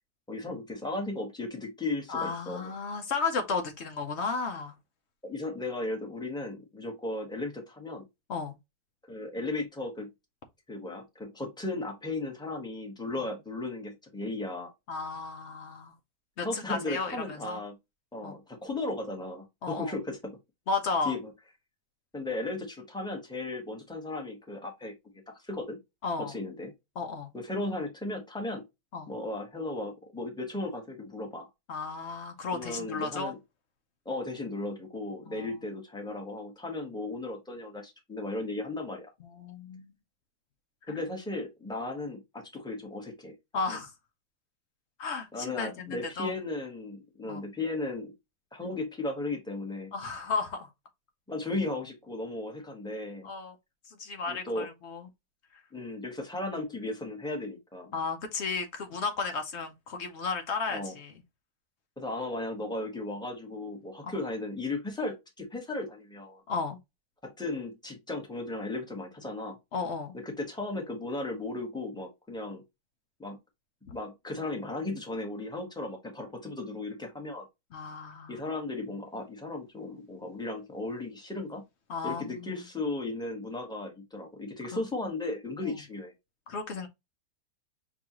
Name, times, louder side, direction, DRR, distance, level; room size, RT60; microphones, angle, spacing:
voice 1, 0.3-2.7 5.2-8.1 9.1-10.1 10.7-14.7 16.4-17.8 18.1-20.4 21.0-21.3 22.1-24.9 25.3-25.8 26.2-26.7 27.3-28.6 29.1-31.5 32.5-33.4 34.0-39.1 40.9-43.4 45.3-48.1 48.5-49.9 51.3-53.3 54.3-54.7 55.7-57.9 60.7-60.9 62.0-66.4 67.2-69.6 70.1-72.6 73.2-73.4 73.9-77.5 78.3-81.6 82.0-86.1, left 2 dB, 5° left, 0.7 m, -36 dB
voice 2, 2.1-4.7 8.3-8.6 14.9-15.9 16.4-17.2 17.4-17.6 18.2-18.4 19.6-19.9 20.7-21.2 26.0-26.3 27.0-27.3 28.9-29.1 31.7-33.3 35.3-35.5 39.2-39.9 40.9-41.0 43.5-43.9 45.0-46.3 47.3-47.5 49.9-50.7 53.2-53.5 53.9-55.1 57.9-61.1 64.0-64.1 66.5-66.8 69.7-70.2 77.7-78.4 81.9-82.6 85.6-85.7 86.5-86.9, left 4 dB, 80° left, 0.6 m, -34 dB
6.0 x 2.4 x 2.9 m
omnidirectional pair, 2.0 m